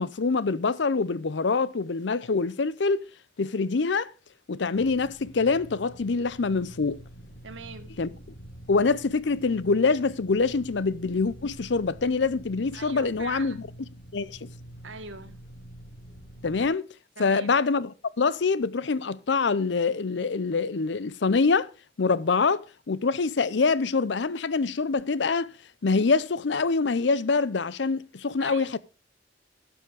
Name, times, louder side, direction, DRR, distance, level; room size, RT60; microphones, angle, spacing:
voice 1, 0.0-3.0 3.4-4.1 4.5-7.0 8.0-8.1 8.7-13.7 14.1-14.5 16.4-16.9 17.2-21.7 22.0-25.5 25.8-28.8, left 4 dB, 65° left, 0.6 m, -25 dB
sound 1, 4.7-16.7, right 1 dB, 85° left, 4.7 m, -46 dB
voice 2, 7.4-8.0 12.7-13.7 14.8-15.4 17.2-17.5 28.4-28.7, right 4 dB, 80° right, 1.5 m, -42 dB
12.0 x 7.3 x 5.0 m
head